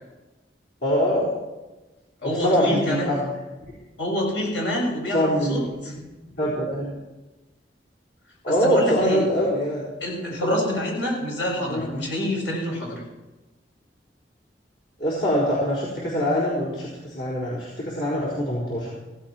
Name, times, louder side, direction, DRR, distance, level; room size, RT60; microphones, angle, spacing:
voice 1, 0.8-1.3 2.2-3.2 5.1-5.6 6.3-6.9 8.4-9.9 10.4-10.5 11.7-12.0 15.0-18.9, equal, 70° left, -7 dB, 4.4 m, -23 dB
voice 2, 2.2-3.1 4.0-5.9 8.5-9.2 10.0-13.0, equal, 90° left, -2 dB, 6.9 m, -27 dB
16.0 x 16.0 x 4.5 m, 1.1 s
head